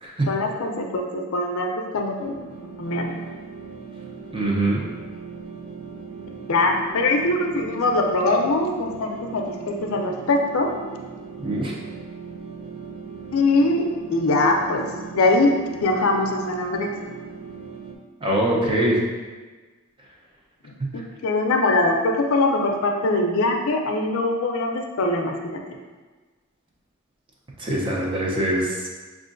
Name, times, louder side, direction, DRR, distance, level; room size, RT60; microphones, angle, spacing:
voice 1, 0.3-2.4 2.8-3.2 6.5-10.7 13.3-14.9 15.1-16.9 20.6-25.6, left 2 dB, 80° left, 2 dB, 0.5 m, -22 dB
sound 1, 2.2-18.0, right 5 dB, 85° right, 0.5 m, -39 dB
voice 2, 4.3-4.8 11.4-11.7 18.2-19.0 27.6-28.9, right 1 dB, 25° right, -3 dB, 0.6 m, -23 dB
5.4 x 2.4 x 2.5 m, 1.4 s
head